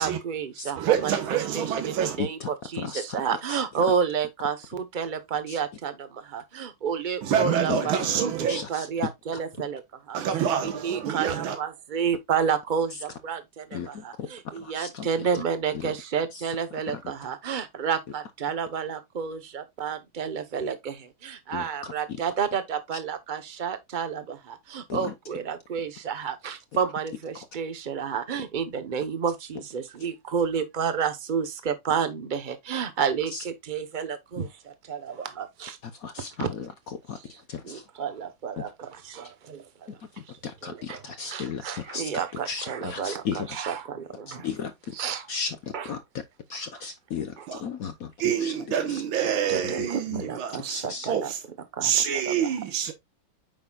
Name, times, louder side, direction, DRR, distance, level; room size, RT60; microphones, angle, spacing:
voice 1, 0.0-1.1 1.5-35.8 36.4-36.5 37.6-39.9 40.6-41.0 41.3-44.5 45.0-45.3 45.7-45.9 49.5-51.3 51.7-51.9 52.3-52.5, right 7 dB, 40° right, 0.7 m, -30 dB
voice 2, 0.8-2.2 7.2-8.6 10.1-11.6 47.5-47.6 48.2-51.4 51.8-52.9, right 9 dB, 80° right, 1.9 m, -27 dB
voice 3, 2.2-2.5 2.7-3.2 3.5-3.8 5.5-5.6 7.3-7.4 7.7-7.9 8.5-9.1 13.7-14.3 14.5-15.1 15.3-15.4 15.7-15.9 16.3-16.4 16.9-17.0 21.5-22.2 24.9-25.1 33.3-33.4 35.8-37.9 38.6-38.7 40.0-42.1 42.4-43.6 44.3-44.9 45.3-46.2 46.5-49.0 49.5-50.3 50.7-51.1, left 6 dB, 60° left, 1.0 m, -35 dB
8.6 x 5.8 x 2.3 m
omnidirectional pair, 2.3 m